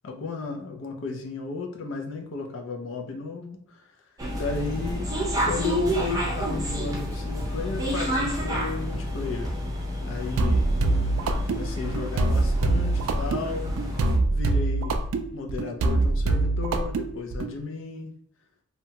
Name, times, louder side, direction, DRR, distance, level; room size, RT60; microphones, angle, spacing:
voice 1, 0.0-3.8 4.3-5.1 5.4-9.5 10.0-10.6 11.5-13.7 14.3-15.0 15.3-18.1, left 4 dB, 65° left, 3 dB, 0.4 m, -33 dB
sound 1, 4.2-14.2, equal, 15° right, 0.5 m, -29 dB
sound 2, 10.4-17.5, right 2 dB, 75° right, 0.3 m, -24 dB
2.7 x 2.2 x 2.8 m, 0.67 s
head